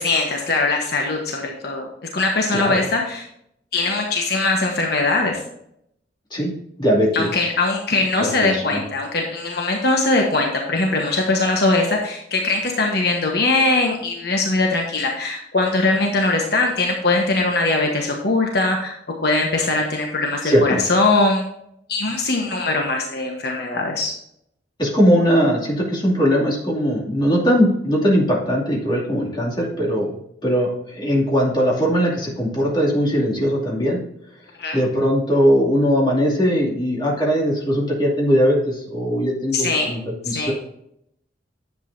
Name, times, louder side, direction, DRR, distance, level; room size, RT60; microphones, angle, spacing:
voice 1, 0.0-3.3 3.7-5.4 7.1-18.9 19.2-21.4 21.9-24.1 34.6-34.8 39.5-39.9 40.2-40.5, left 2 dB, 60° left, 1 dB, 1.2 m, -21 dB
voice 2, 2.5-2.8 6.3-6.5 6.8-7.3 8.4-8.8 20.4-20.8 24.8-30.1 30.4-34.0 34.7-40.0 40.2-40.5, equal, 25° left, -4 dB, 2.6 m, -19 dB
10.5 x 8.0 x 2.7 m, 0.75 s
head